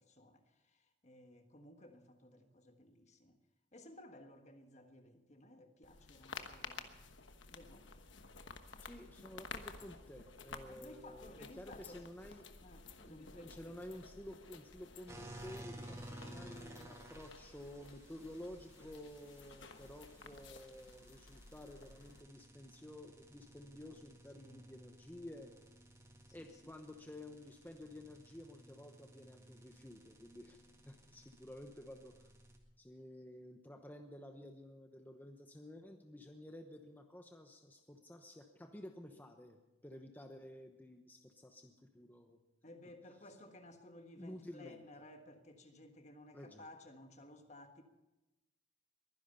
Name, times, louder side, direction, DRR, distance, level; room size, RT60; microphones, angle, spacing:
voice 1, 0.0-3.4 3.7-7.0 7.5-7.9 10.7-12.0 12.6-13.8 24.3-24.6 26.4-26.7 42.6-47.8, left 1 dB, 35° left, 1.4 m, -57 dB
sound 1, 5.8-22.2, left 4 dB, 75° left, 1.2 m, -53 dB
voice 2, 8.8-12.5 13.1-25.5 26.3-32.3 32.8-42.4 44.2-44.8 46.3-46.6, left 1 dB, 10° left, 0.9 m, -52 dB
sound 2, 15.1-32.6, right 1 dB, 15° right, 1.9 m, -56 dB
22.5 x 10.5 x 5.6 m
head